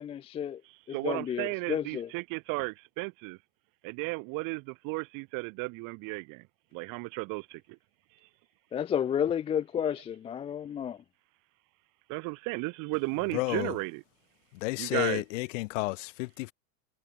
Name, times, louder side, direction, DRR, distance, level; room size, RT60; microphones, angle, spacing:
voice 1, 0.0-0.6 0.9-2.1 8.7-11.0, left 9 dB, 15° left, 0.3 m, -31 dB
voice 2, 0.6-3.4 3.8-6.4 6.7-7.8 8.1-8.3 12.1-14.0 14.8-15.2, right 28 dB, 55° right, 1.5 m, -34 dB
voice 3, 13.3-13.8 14.5-16.5, left 23 dB, 75° left, 0.8 m, -31 dB
supercardioid pair, 115°, 38 cm